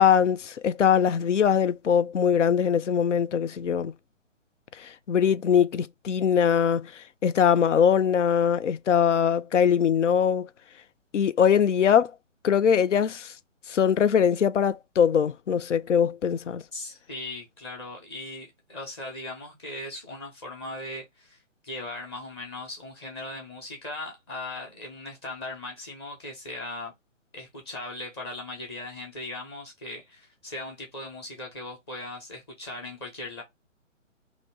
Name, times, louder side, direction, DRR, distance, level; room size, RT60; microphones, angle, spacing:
voice 1, 0.0-3.9 4.8-10.5 11.1-12.1 12.4-13.3 13.7-16.6, left 8 dB, 70° left, 0.5 m, -22 dB
voice 2, 16.7-26.9 27.3-33.4, left 2 dB, 20° left, 0.9 m, -38 dB
3.0 x 2.7 x 4.3 m
figure-of-eight pair, 140°, 38 cm